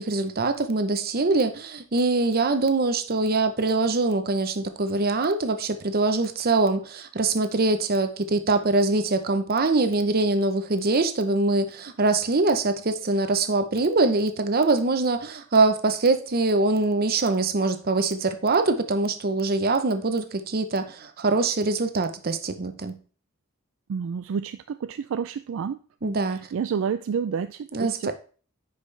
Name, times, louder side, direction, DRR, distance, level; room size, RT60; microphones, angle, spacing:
voice 1, 0.0-23.0 26.0-26.5 27.7-28.1, right 3 dB, 45° right, 9 dB, 0.8 m, -23 dB
voice 2, 23.9-25.8 26.3-28.1, right 6 dB, 65° right, 11 dB, 0.3 m, -29 dB
9.7 x 5.1 x 3.3 m, 0.39 s
head